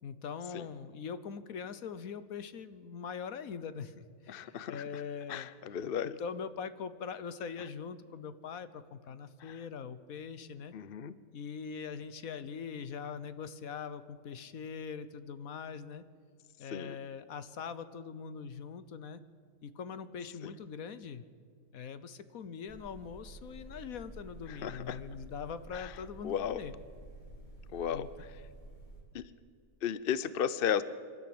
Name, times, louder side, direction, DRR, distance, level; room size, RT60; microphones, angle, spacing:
voice 1, 0.0-5.5 6.0-10.7 11.3-16.0 16.6-19.2 19.6-21.2 21.7-26.7 27.9-28.1, left 6 dB, 65° left, 13 dB, 1.3 m, -42 dB
voice 2, 4.3-5.0 5.3-6.1 9.4-9.6 10.7-11.1 16.7-17.0 20.4-20.5 24.5-25.0 25.7-25.9 26.2-26.6 27.7-28.1 29.1-29.2 29.8-30.8, left 8 dB, 50° left, 15 dB, 0.7 m, -34 dB
sound 1, 22.7-29.0, right 1 dB, 30° left, 3.7 m, -50 dB
25.5 x 12.5 x 8.7 m, 2.1 s
omnidirectional pair, 1.6 m